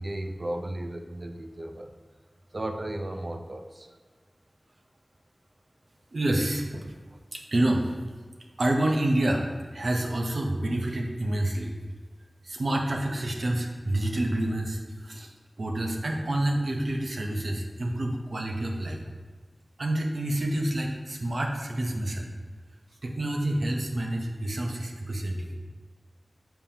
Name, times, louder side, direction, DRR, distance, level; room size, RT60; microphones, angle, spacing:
voice 1, 0.0-1.9 2.5-4.0, right 1 dB, 45° right, 6 dB, 0.5 m, -35 dB
voice 2, 6.1-6.8 7.3-7.9 8.6-9.5 9.7-11.7 12.4-15.3 15.6-19.0 19.8-22.3 23.0-25.5, right 1 dB, 75° right, 2 dB, 0.8 m, -28 dB
6.9 x 5.4 x 2.8 m, 1.4 s
wide cardioid pair, 70°, 0 cm